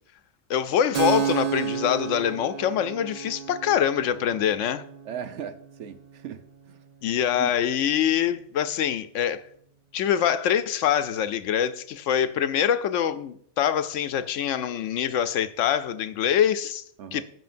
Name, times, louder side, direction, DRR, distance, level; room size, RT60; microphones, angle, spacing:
voice 1, 0.5-4.8 7.0-9.4 9.9-16.8 17.1-17.2, left 9 dB, 90° left, 1.0 m, -24 dB
Keyboard (musical), 0.9-8.3, right 8 dB, 40° right, 0.7 m, -33 dB
voice 2, 5.0-6.4 6.7-6.9 7.4-7.5 17.0-17.2, right 9 dB, 75° right, 1.0 m, -37 dB
15.0 x 5.8 x 2.5 m
omnidirectional pair, 1.2 m